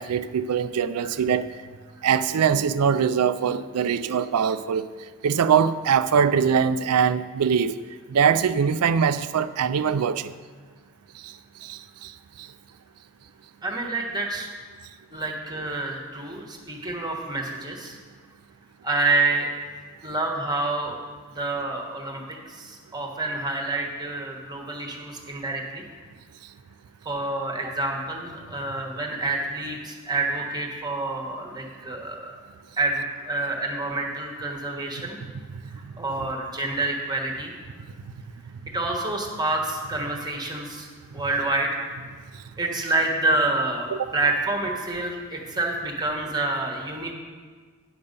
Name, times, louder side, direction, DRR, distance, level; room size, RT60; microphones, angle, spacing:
voice 1, 0.0-1.5 2.0-4.9 5.2-7.8 8.1-10.3 11.2-11.3 11.6-12.1 12.4-12.5 35.2-35.6 36.2-36.3 43.9-44.1, right 7 dB, 80° right, 13 dB, 0.4 m, -22 dB
voice 2, 13.6-14.5 15.1-17.9 18.8-19.5 20.0-20.9 21.3-22.2 22.6-25.8 27.0-32.3 32.8-35.2 36.0-37.5 38.7-40.9 41.1-41.7 42.6-47.1, right 2 dB, 20° right, 0 dB, 1.3 m, -28 dB
9.6 x 6.9 x 5.3 m, 1.5 s
head